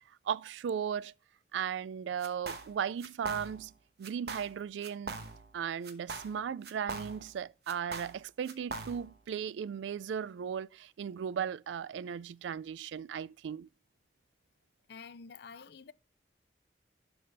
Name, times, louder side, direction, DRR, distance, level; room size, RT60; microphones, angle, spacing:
voice 1, 0.3-1.1 1.5-3.7 4.0-5.2 5.5-13.7, right 8 dB, 80° right, 0.3 m, -36 dB
sound 1, 2.2-2.7 3.0-3.7 4.0-4.6 4.8-5.6 5.8-7.4 7.7-9.2, right 3 dB, 60° right, 1.1 m, -42 dB
voice 2, 14.9-15.9, left 5 dB, 65° left, 0.5 m, -48 dB
12.0 x 4.1 x 3.3 m
head